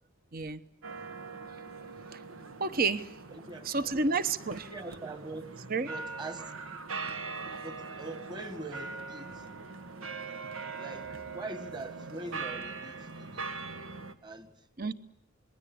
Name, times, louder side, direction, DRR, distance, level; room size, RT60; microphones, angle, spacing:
sound 1, 0.8-14.2, right 4 dB, 90° right, 1.5 m, -41 dB
voice 1, 2.6-3.1 3.7-4.7 5.7-5.9 14.8-14.9, right 4 dB, 45° right, 1.0 m, -30 dB
voice 2, 3.3-4.0 4.6-6.5 7.6-9.5 10.8-13.7 14.2-14.7, right 2 dB, 20° right, 1.7 m, -43 dB
27.5 x 21.0 x 8.6 m
head